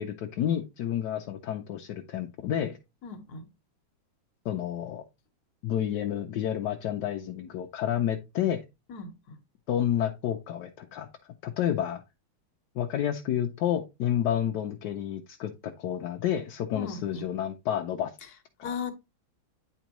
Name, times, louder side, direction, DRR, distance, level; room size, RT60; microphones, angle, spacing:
voice 1, 0.0-2.8 4.4-5.0 5.6-8.6 9.7-11.1 11.4-12.0 12.7-18.1, left 10 dB, 70° left, 1.1 m, -30 dB
voice 2, 3.0-3.5 8.9-9.4 16.7-17.2 18.2-18.3 18.6-18.9, left 5 dB, 55° left, 1.5 m, -37 dB
9.3 x 4.4 x 3.0 m
omnidirectional pair, 2.3 m